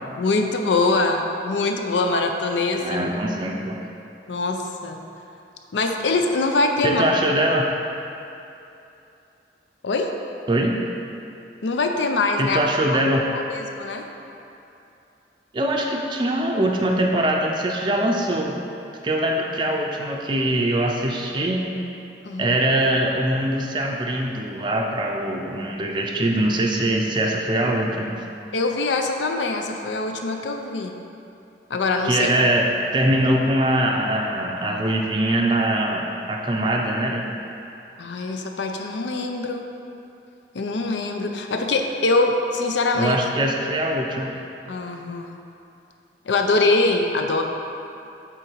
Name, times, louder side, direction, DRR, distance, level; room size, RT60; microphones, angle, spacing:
voice 1, 0.2-3.1 4.3-5.0 5.7-7.0 9.8-10.1 11.6-12.6 12.9-13.0 13.3-14.1 22.2-22.6 28.5-31.0 31.7-32.3 38.0-39.7 40.5-43.2 44.7-45.4 46.2-47.4, left 3 dB, 85° left, 4 dB, 0.5 m, -23 dB
voice 2, 2.8-3.8 6.8-7.7 10.5-10.8 12.4-13.2 15.5-18.6 19.0-21.7 22.4-28.2 32.0-37.3 42.9-44.4, right 1 dB, 25° right, 0 dB, 0.4 m, -22 dB
7.8 x 3.8 x 4.6 m, 2.8 s
head